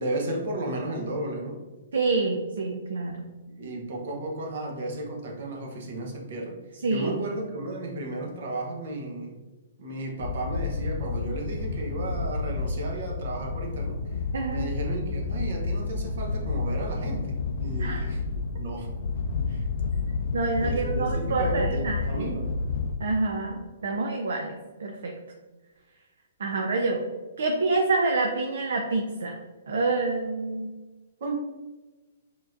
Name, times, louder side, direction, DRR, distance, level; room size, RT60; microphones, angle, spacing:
voice 1, 0.0-1.6 3.6-6.6 6.9-9.4 9.8-14.2 14.5-17.3 17.6-18.2 18.5-18.9 19.5-19.7 20.6-22.5 31.2-31.3, right 2 dB, 60° right, 0 dB, 1.0 m, -34 dB
voice 2, 1.9-3.3 6.8-7.2 14.3-14.7 17.8-18.1 20.3-22.3 23.0-25.1 26.4-27.0 27.4-29.3 29.7-30.7, right 3 dB, 80° right, 1 dB, 0.6 m, -27 dB
sound 1, 10.2-23.0, left 3 dB, 65° left, 0.4 m, -30 dB
4.7 x 3.0 x 2.6 m, 1.2 s
hypercardioid pair, 155°, 0 cm